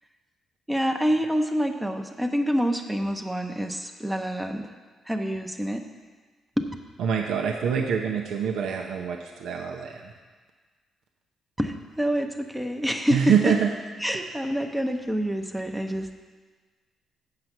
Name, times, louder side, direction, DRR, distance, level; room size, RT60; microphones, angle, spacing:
voice 1, 0.7-4.7 5.1-5.8 6.6-6.7 11.6-13.7 14.0-16.1, equal, 5° right, 4 dB, 0.7 m, -27 dB
voice 2, 7.0-9.9 13.1-13.7, right 7 dB, 75° right, 1 dB, 0.7 m, -25 dB
7.9 x 6.8 x 5.9 m, 1.4 s
cardioid pair, 90°, 0 cm